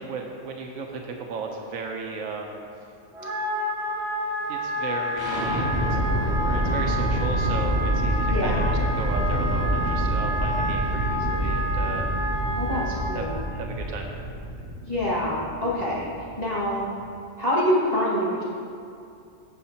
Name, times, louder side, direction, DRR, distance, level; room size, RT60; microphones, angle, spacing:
voice 1, 0.0-2.7 4.5-12.1 13.1-13.3 13.5-14.1, right 4 dB, 90° right, 2 dB, 1.2 m, -35 dB
Wind instrument woodwind instrument, 3.1-13.0, equal, 25° right, 2.4 m, -30 dB
sound 1, 5.2-17.0, right 1 dB, 55° right, 2.4 m, -27 dB
voice 2, 8.3-8.6 12.6-13.4 14.8-16.1 16.4-16.9 17.4-18.4, left 1 dB, 30° left, -8 dB, 2.0 m, -26 dB
14.0 x 7.4 x 2.9 m, 2.5 s
omnidirectional pair, 1.4 m